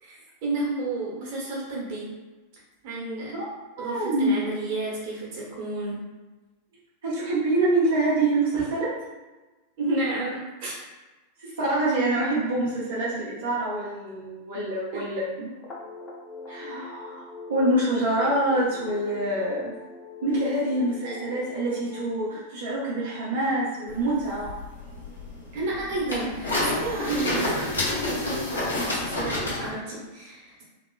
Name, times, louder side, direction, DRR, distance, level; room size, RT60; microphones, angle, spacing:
voice 1, 0.0-2.1 2.8-3.3 3.8-6.0 8.5-8.6 9.8-10.7 14.9-15.0 20.7-21.2 25.5-30.6, right 2 dB, 45° right, -4 dB, 1.1 m, -31 dB
voice 2, 3.8-4.4 7.0-8.9 11.4-15.5 16.5-19.7 20.2-24.5, right 1 dB, 65° right, -9 dB, 0.9 m, -26 dB
sound 1, 15.5-22.0, left 3 dB, 20° left, 0.7 m, -42 dB
sound 2, 23.9-29.7, left 1 dB, 75° left, 0.9 m, -29 dB
2.9 x 2.9 x 2.3 m, 1.2 s
figure-of-eight pair, 90°, 0 cm